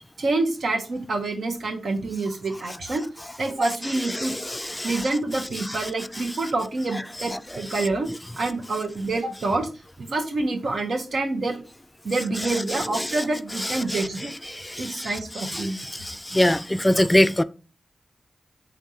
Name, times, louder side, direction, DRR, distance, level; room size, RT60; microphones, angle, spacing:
voice 1, 0.2-3.0 3.4-4.3 4.8-8.1 8.4-9.7 10.0-11.6 12.0-14.3 14.8-15.9 16.3-16.4, right 2 dB, 70° right, 0.8 m, -27 dB
voice 2, 4.5-4.9 14.5-15.1 15.5-15.7 16.0-17.4, left 1 dB, 15° left, 0.3 m, -22 dB
3.9 x 3.4 x 2.7 m
cardioid pair, 40°, 0 cm